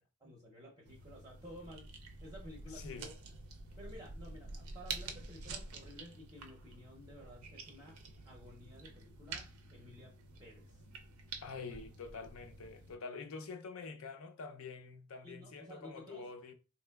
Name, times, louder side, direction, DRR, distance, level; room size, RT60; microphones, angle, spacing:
voice 1, 0.2-1.9 2.2-3.1 3.8-7.9 8.2-9.4 9.7-10.1 10.4-10.8 15.2-16.3, equal, 15° right, 0.6 m, -53 dB
sound 1, 0.9-12.9, right 4 dB, 75° right, 0.5 m, -48 dB
voice 2, 2.7-3.1 11.4-16.5, left 4 dB, 65° left, 0.5 m, -46 dB
3.7 x 2.9 x 2.2 m
head